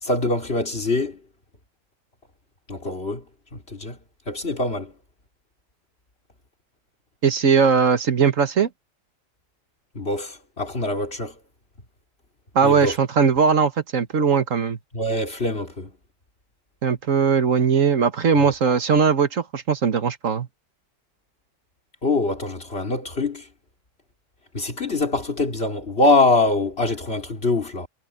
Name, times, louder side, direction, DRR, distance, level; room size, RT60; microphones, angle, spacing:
voice 1, 0.0-1.2 2.7-3.2 3.5-4.0 4.3-4.9 9.9-11.4 12.6-13.0 14.9-15.9 22.0-23.5 24.5-27.9, left 2 dB, 50° left, 3.7 m, -24 dB
voice 2, 7.2-8.7 12.6-14.8 16.8-20.5, right 6 dB, 70° right, 1.8 m, -19 dB
omnidirectional pair, 1.4 m